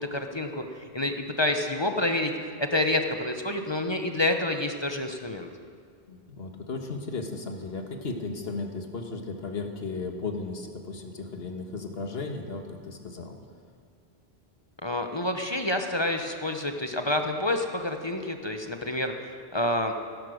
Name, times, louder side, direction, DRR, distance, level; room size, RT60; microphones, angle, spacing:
voice 1, 0.0-2.3 2.6-5.5 14.8-19.9, left 1 dB, 25° left, 5 dB, 0.9 m, -28 dB
voice 2, 6.1-13.4, left 3 dB, 65° left, 4 dB, 1.7 m, -35 dB
17.5 x 11.0 x 6.4 m, 2.2 s
omnidirectional pair, 1.1 m